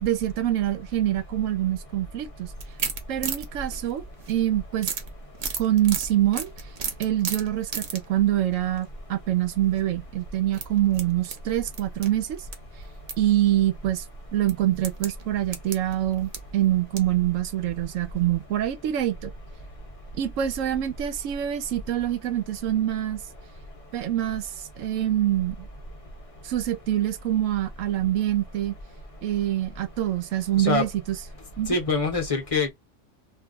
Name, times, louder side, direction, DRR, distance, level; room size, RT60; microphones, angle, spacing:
voice 1, 0.0-2.5 3.1-4.9 5.6-6.5 7.0-12.5 13.2-14.0 14.3-19.3 20.2-23.2 23.9-25.7 26.4-28.7 29.2-31.2 31.6-31.8, right 12 dB, 90° right, 1.0 m, -25 dB
sound 1, 2.6-4.4 4.8-8.1 8.5-8.8 9.6-9.8 10.5-12.6 12.8-13.2 13.6-13.7 14.5-17.2 17.6-17.7 18.1-18.2, right 6 dB, 60° right, 1.0 m, -34 dB
voice 2, 31.7-32.7, left 3 dB, 30° left, 0.8 m, -24 dB
2.5 x 2.3 x 3.7 m
omnidirectional pair, 1.3 m